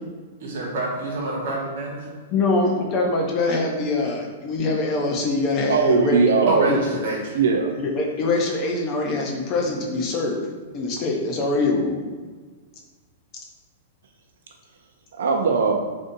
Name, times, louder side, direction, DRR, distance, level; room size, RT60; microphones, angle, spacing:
voice 1, 0.4-2.1 6.4-7.4, right 2 dB, 55° right, -3 dB, 1.0 m, -27 dB
voice 2, 2.3-6.4 6.7-6.8 7.8-10.5 10.7-12.0, left 2 dB, 25° left, 1 dB, 0.4 m, -23 dB
voice 3, 5.7-6.8 7.3-7.7 15.1-15.7, right 5 dB, 85° right, 2 dB, 0.4 m, -19 dB
3.8 x 2.6 x 2.5 m, 1.4 s
supercardioid pair, 170°, 0 cm